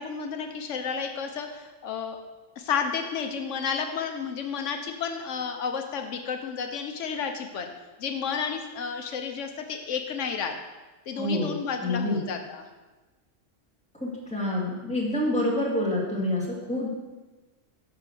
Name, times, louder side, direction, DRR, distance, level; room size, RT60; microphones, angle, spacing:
voice 1, 0.0-2.2 2.6-7.7 8.0-10.6 11.1-12.7, left 6 dB, 85° left, 5 dB, 1.1 m, -31 dB
voice 2, 11.2-11.6 11.8-12.2 14.0-16.9, left 1 dB, 5° left, -5 dB, 2.1 m, -27 dB
11.0 x 3.8 x 6.8 m, 1.2 s
omnidirectional pair, 1.2 m